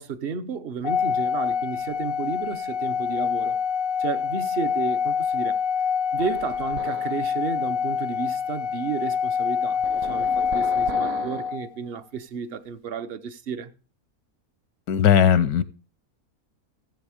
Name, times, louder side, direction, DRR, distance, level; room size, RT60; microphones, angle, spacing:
voice 1, 0.0-3.6 4.0-5.6 6.1-13.7, right 6 dB, 50° right, 0.8 m, -32 dB
Organ, 0.8-11.7, left 7 dB, 55° left, 0.6 m, -26 dB
sound 1, 6.2-7.3 9.8-11.6, right 9 dB, 70° right, 1.1 m, -38 dB
voice 2, 14.9-15.6, left 8 dB, 85° left, 1.2 m, -18 dB
15.0 x 7.5 x 4.9 m
omnidirectional pair, 1.6 m